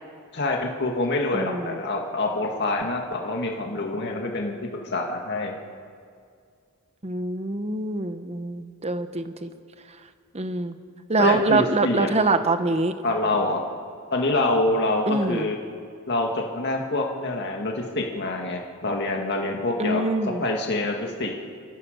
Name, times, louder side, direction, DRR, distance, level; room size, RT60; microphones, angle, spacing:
voice 1, 0.3-5.6 11.2-12.1 13.0-13.6 14.1-15.6 16.1-20.0 20.4-21.4, left 2 dB, 50° left, 1 dB, 2.2 m, -26 dB
voice 2, 1.3-1.8 7.0-9.5 10.3-10.7 11.1-12.9 15.1-15.5 19.8-20.4, right 2 dB, 30° right, 9 dB, 1.0 m, -24 dB
29.0 x 14.5 x 6.7 m, 2.3 s
head